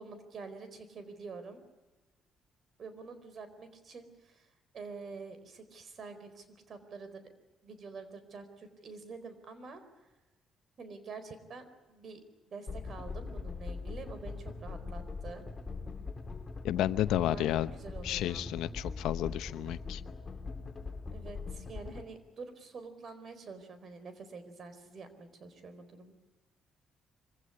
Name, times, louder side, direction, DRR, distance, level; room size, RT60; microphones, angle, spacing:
voice 1, 0.0-1.6 2.8-7.3 7.6-9.8 10.8-15.5 17.2-18.5 21.1-26.1, right 4 dB, 55° right, 11 dB, 4.3 m, -47 dB
sound 1, 12.7-22.0, left 4 dB, 30° left, 2.6 m, -41 dB
voice 2, 16.6-17.7 18.0-20.0, left 12 dB, 90° left, 13 dB, 0.8 m, -31 dB
24.5 x 16.5 x 9.9 m, 1.1 s
cardioid pair, 90°, 0 cm